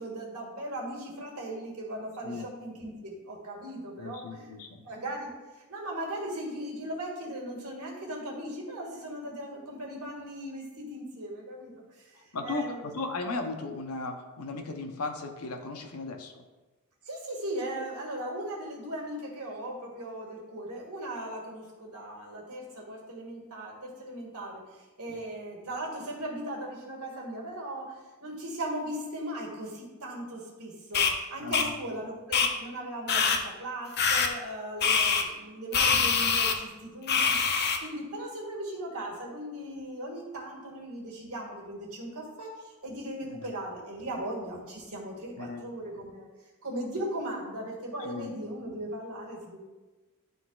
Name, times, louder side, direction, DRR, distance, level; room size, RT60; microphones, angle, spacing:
voice 1, 0.0-4.5 4.8-12.9 17.0-46.3 46.6-49.6, right 1 dB, 75° right, -2 dB, 2.0 m, -38 dB
voice 2, 4.0-4.8 12.3-16.3 25.1-25.2 31.4-31.7 43.4-43.5 45.4-45.6 48.0-48.3, left 3 dB, 80° left, 5 dB, 0.8 m, -36 dB
sound 1, 30.9-31.1 31.5-31.7 32.3-32.5 33.1-33.4 34.0-34.3 34.8-35.2 35.7-36.5 37.1-37.8, left 5 dB, 45° left, 0.6 m, -24 dB
11.5 x 3.9 x 2.4 m, 1.2 s
head